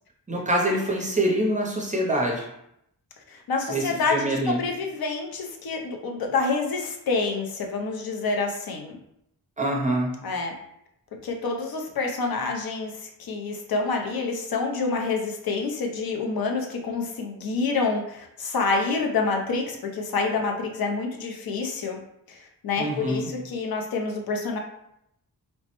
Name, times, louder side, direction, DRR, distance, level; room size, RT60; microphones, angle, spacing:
voice 1, 0.3-2.5 3.7-4.6 9.6-10.1 22.8-23.3, right 1 dB, 20° right, -1 dB, 0.5 m, -25 dB
voice 2, 3.3-9.0 10.2-10.5 11.2-22.0 22.3-24.6, left 4 dB, 80° left, 2 dB, 0.6 m, -27 dB
3.1 x 2.0 x 2.9 m, 0.78 s
wide cardioid pair, 150°, 36 cm